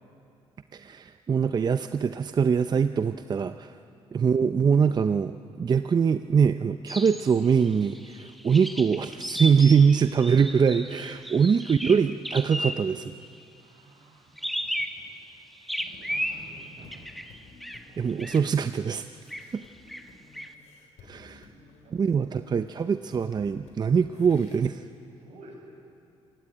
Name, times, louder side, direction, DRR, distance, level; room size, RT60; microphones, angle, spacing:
voice 1, 0.7-3.7 4.1-13.1 18.0-19.0 19.5-19.6 21.1-21.5 21.9-24.8, right 6 dB, 35° right, 10 dB, 0.6 m, -23 dB
voice 2, 3.8-4.1 11.1-11.8 13.5-15.3 15.8-17.0 17.3-18.4 19.3-19.6 19.9-20.4 21.3-22.7 25.2-25.6, right 2 dB, 70° right, 0 dB, 7.5 m, -54 dB
sound 1, 6.9-13.1 14.4-15.3 15.7-17.9 18.2-18.4 19.3-19.6 19.9-20.5, equal, ahead, 1.3 m, -35 dB
sound 2, 15.9-24.6, left 4 dB, 80° left, 4.0 m, -54 dB
26.0 x 19.0 x 8.9 m, 2.6 s
cardioid pair, 85°, 12 cm